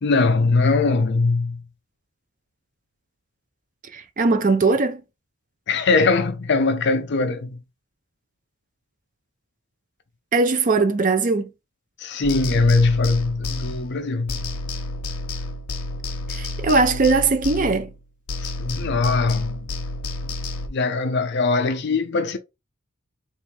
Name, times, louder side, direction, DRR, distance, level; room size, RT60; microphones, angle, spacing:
voice 1, 0.0-1.6 5.7-7.6 12.0-14.5 18.4-19.6 20.7-22.4, left 3 dB, 50° left, 0.5 m, -21 dB
voice 2, 3.9-5.0 10.3-11.5 16.3-17.9, right 3 dB, 35° right, 0.4 m, -20 dB
sound 1, 12.2-14.0 14.3-18.0 18.3-20.7, left 2 dB, 85° left, 0.7 m, -30 dB
3.6 x 2.6 x 3.2 m
head